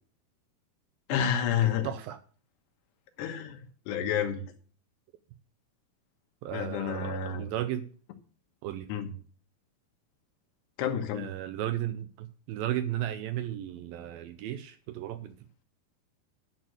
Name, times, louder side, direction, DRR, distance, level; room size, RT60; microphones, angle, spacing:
voice 1, 1.1-1.9 3.2-4.4 6.5-7.5 8.9-9.1 10.8-11.3, left 8 dB, 85° left, 6 dB, 3.3 m, -30 dB
voice 2, 1.6-2.2 6.4-7.9 8.6-8.9 11.2-15.3, right 12 dB, 80° right, 10 dB, 2.2 m, -35 dB
10.5 x 6.4 x 6.4 m, 0.42 s
omnidirectional pair, 4.7 m